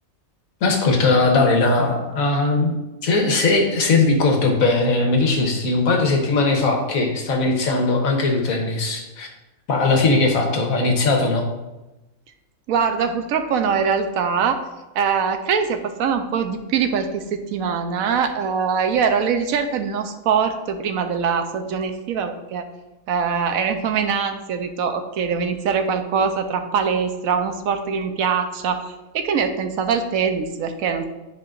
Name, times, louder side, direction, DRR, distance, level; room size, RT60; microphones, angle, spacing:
voice 1, 0.6-2.8 3.0-9.3 9.7-11.5, left 3 dB, 85° left, 2 dB, 1.5 m, -19 dB
voice 2, 12.7-14.6 14.9-22.7 23.1-31.0, right 6 dB, 90° right, 7 dB, 1.1 m, -23 dB
10.5 x 4.8 x 2.5 m, 1.0 s
omnidirectional pair, 1.4 m